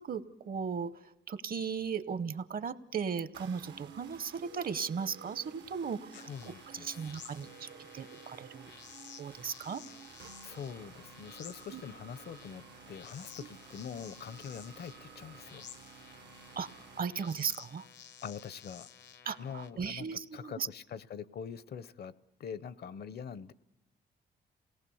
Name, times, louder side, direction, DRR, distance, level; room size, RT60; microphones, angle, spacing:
voice 1, 0.0-8.7 9.2-9.8 11.7-11.8 16.6-16.7 17.0-17.9 19.3-20.7, right 6 dB, 55° right, 14 dB, 0.9 m, -37 dB
sound 1, 3.3-17.1, right 7 dB, 85° right, 1.1 m, -53 dB
sound 2, 6.1-19.7, left 8 dB, 90° left, 1.1 m, -53 dB
voice 2, 6.1-7.5 9.8-10.0 10.4-15.6 18.2-18.9 19.4-22.1 22.4-23.5, left 7 dB, 65° left, 17 dB, 0.7 m, -44 dB
27.5 x 18.0 x 7.0 m, 1.0 s
cardioid pair, 85°, 18 cm